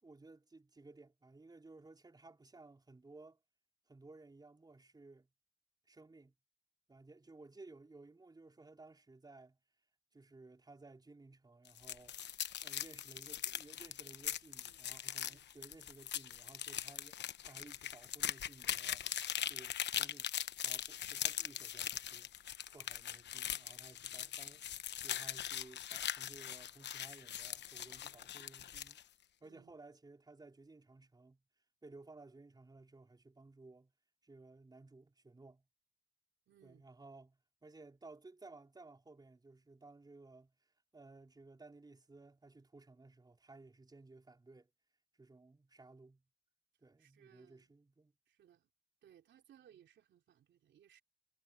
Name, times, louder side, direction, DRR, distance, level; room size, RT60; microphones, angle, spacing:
voice 1, 0.0-3.4 3.9-5.3 5.9-6.3 6.9-9.6 10.1-12.2 12.6-19.1 19.5-20.3 20.6-22.3 22.7-24.6 25.0-29.0 29.4-31.4 31.8-33.9 34.2-35.7 36.6-40.5 40.9-44.7 45.2-46.2 46.8-48.1, right 3 dB, 20° right, 4.4 m, -58 dB
sound 1, 11.6-29.0, left 10 dB, 60° left, 1.0 m, -41 dB
voice 2, 29.4-29.7 36.5-36.9 47.0-47.8 48.3-48.7 49.0-51.0, right 10 dB, 65° right, 3.5 m, -65 dB
cardioid pair, 90°, 20 cm